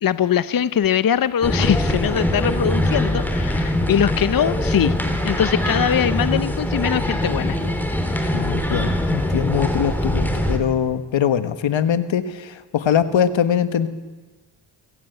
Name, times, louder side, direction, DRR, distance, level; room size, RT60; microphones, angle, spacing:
voice 1, 0.0-5.0 5.2-7.6 8.1-8.4, left 9 dB, 50° left, 15 dB, 0.7 m, -21 dB
sound 1, 1.4-10.6, left 1 dB, 5° left, 3.4 m, -22 dB
voice 2, 8.3-13.9, left 8 dB, 80° left, 11 dB, 1.4 m, -22 dB
27.0 x 15.5 x 8.1 m, 1.3 s
cardioid pair, 80°, 45 cm